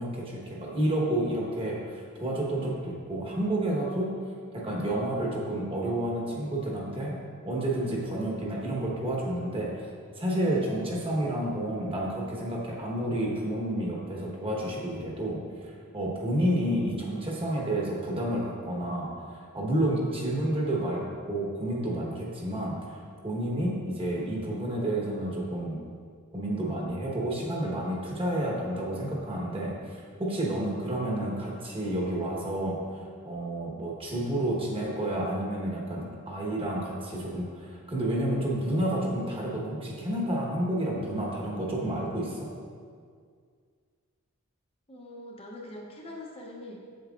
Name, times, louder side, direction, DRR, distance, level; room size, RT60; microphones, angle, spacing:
voice 1, 0.0-4.1 4.5-7.2 7.4-9.7 10.2-25.8 26.3-42.5, right 1 dB, 25° right, -3 dB, 1.1 m, -30 dB
voice 2, 44.9-46.8, left 1 dB, 25° left, -2 dB, 0.7 m, -43 dB
7.8 x 7.5 x 2.4 m, 2.1 s
head